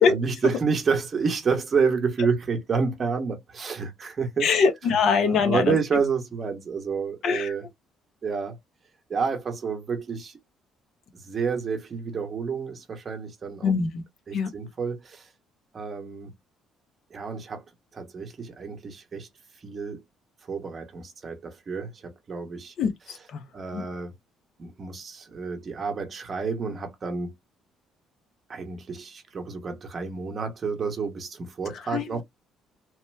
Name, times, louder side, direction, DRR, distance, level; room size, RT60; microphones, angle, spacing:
voice 1, 0.0-4.5 5.2-7.6 8.2-8.6 9.1-10.4 11.1-13.7 14.3-15.3 15.7-16.3 17.1-17.6 17.9-19.3 19.6-20.0 20.4-22.7 23.5-24.1 24.6-27.3 28.5-32.2, right 5 dB, 30° right, 0.9 m, -29 dB
voice 2, 4.4-5.8 7.2-7.5 13.6-14.0 14.3-14.5 22.8-23.4 23.7-23.8 31.9-32.2, left 5 dB, 55° left, 0.9 m, -23 dB
3.0 x 2.1 x 3.3 m
cardioid pair, 150°, 0 cm